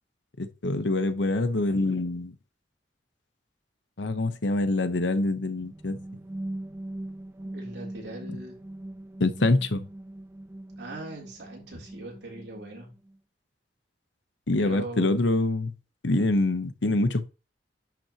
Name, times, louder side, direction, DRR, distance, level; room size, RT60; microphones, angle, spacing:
voice 1, 0.4-2.3 4.0-6.0 9.2-9.8 14.5-15.7 16.0-17.3, left 2 dB, 90° left, 0.9 m, -25 dB
sound 1, 5.4-13.2, right 1 dB, 15° right, 0.4 m, -41 dB
voice 2, 7.4-8.6 10.8-12.9 14.6-15.2, right 2 dB, 75° right, 3.4 m, -40 dB
10.5 x 6.1 x 2.9 m
head